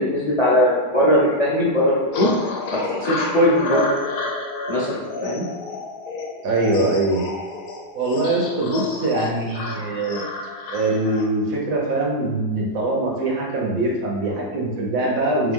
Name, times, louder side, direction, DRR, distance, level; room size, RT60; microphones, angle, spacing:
voice 1, 0.0-2.3 2.7-3.8 4.7-5.4, equal, 35° left, -6 dB, 0.5 m, -19 dB
sound 1, 2.1-11.3, left 3 dB, 75° left, 1.2 m, -30 dB
voice 2, 6.4-7.2 7.9-10.2 10.7-15.5, right 2 dB, 60° right, -2 dB, 1.2 m, -22 dB
3.6 x 3.3 x 3.5 m, 1.4 s
omnidirectional pair, 1.7 m